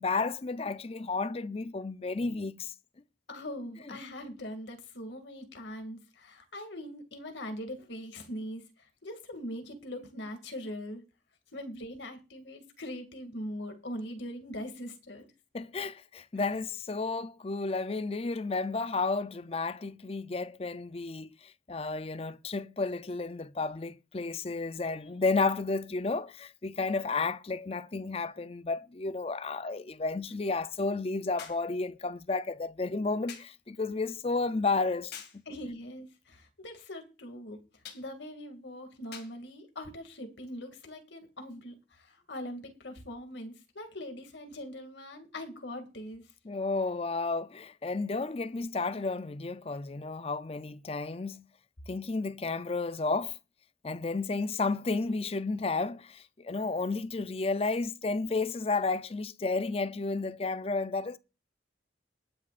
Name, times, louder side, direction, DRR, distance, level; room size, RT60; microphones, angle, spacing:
voice 1, 0.0-2.7 3.9-4.0 15.5-35.4 46.4-51.4 51.9-53.4 53.8-61.2, left 3 dB, 35° left, 0.5 m, -32 dB
voice 2, 3.3-8.6 9.0-11.0 11.5-15.3 35.5-37.6 37.9-46.2, left 1 dB, 80° left, 2.4 m, -41 dB
sound 1, 27.6-27.7 31.4-31.7 33.3-33.6 35.1-35.5 37.8-38.1 39.1-39.4 40.5-40.6, left 7 dB, 60° left, 2.1 m, -46 dB
20.0 x 9.9 x 2.5 m
head